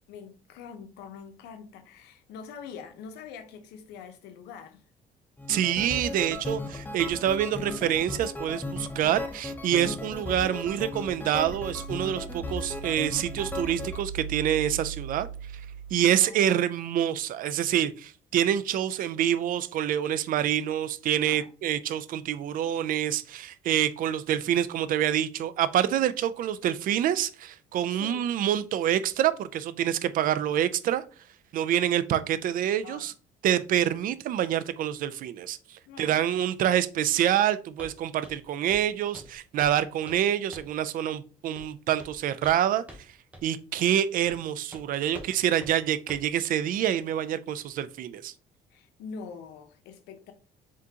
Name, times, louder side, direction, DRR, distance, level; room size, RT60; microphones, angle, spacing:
voice 1, 0.1-4.8 16.1-16.5 21.3-21.5 27.9-28.3 32.8-33.1 35.8-36.3 45.1-45.3 48.7-50.3, left 6 dB, 90° left, 0.7 m, -44 dB
sound 1, 5.4-14.0, left 2 dB, 10° left, 0.6 m, -36 dB
voice 2, 5.5-15.3 15.9-31.0 31.5-33.1 33.4-35.6 36.0-42.8 43.4-48.3, right 10 dB, 55° right, 0.4 m, -26 dB
sound 2, 11.4-16.5, right 7 dB, 45° left, 1.7 m, -40 dB
Walk footsteps, 37.8-38.0 38.2-38.4 38.7-38.9 39.1-39.8 40.1-40.2 40.5-40.8 41.6-41.7 42.0-42.6 42.9-43.0 43.3-43.4 43.8-43.9 44.3-44.4 44.7-44.8 45.1-45.3 45.6-45.7 46.1-46.3, equal, 10° right, 0.9 m, -45 dB
3.7 x 3.5 x 2.8 m
cardioid pair, 110°, 17 cm